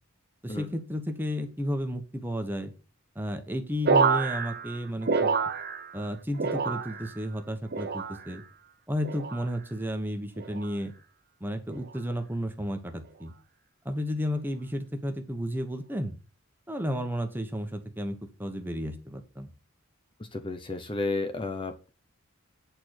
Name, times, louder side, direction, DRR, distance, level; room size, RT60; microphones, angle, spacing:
voice 1, 0.4-2.7 3.1-5.4 5.9-8.4 8.9-10.9 11.4-13.3 13.8-16.1 16.7-19.5, equal, 10° right, 6 dB, 1.0 m, -32 dB
sound 1, 3.8-6.1 6.3-7.2 7.7-8.4 9.0-9.5 10.4-10.7 11.7-12.0, right 5 dB, 45° right, 0.8 m, -28 dB
voice 2, 20.2-21.9, left 2 dB, 25° left, 7 dB, 0.8 m, -32 dB
8.6 x 4.4 x 6.4 m, 0.33 s
head